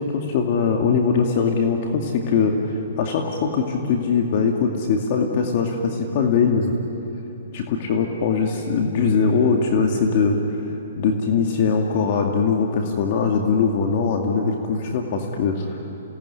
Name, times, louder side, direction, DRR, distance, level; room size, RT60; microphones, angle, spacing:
voice 1, 0.0-6.7 7.5-10.6 11.0-15.8, left 5 dB, 50° left, 2 dB, 2.3 m, -21 dB
28.0 x 18.5 x 10.0 m, 2.9 s
hypercardioid pair, 140°, 0 cm